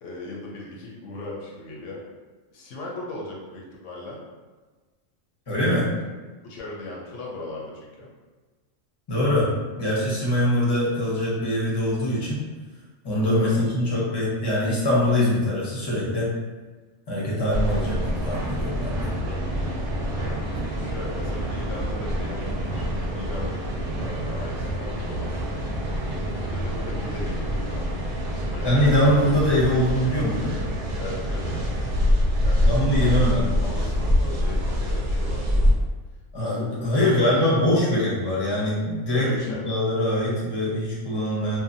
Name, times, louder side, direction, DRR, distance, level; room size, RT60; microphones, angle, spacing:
voice 1, 0.0-2.0 2.5-4.2 6.4-8.1 13.3-13.6 20.1-20.4 20.7-25.7 26.1-28.9 31.0-31.5 32.4-32.7 33.0-33.3 33.6-35.8 36.4-36.7 37.0-37.9 39.1-39.8, left 2 dB, 75° left, -3 dB, 0.9 m, -38 dB
voice 2, 5.5-5.9 9.1-12.4 13.0-16.3 17.1-19.1 28.6-30.6 32.6-33.6 36.3-41.6, left 1 dB, 25° left, -6 dB, 0.6 m, -23 dB
sound 1, 17.5-35.7, equal, 60° right, 0.7 m, -26 dB
2.6 x 2.2 x 2.6 m, 1.3 s
omnidirectional pair, 1.3 m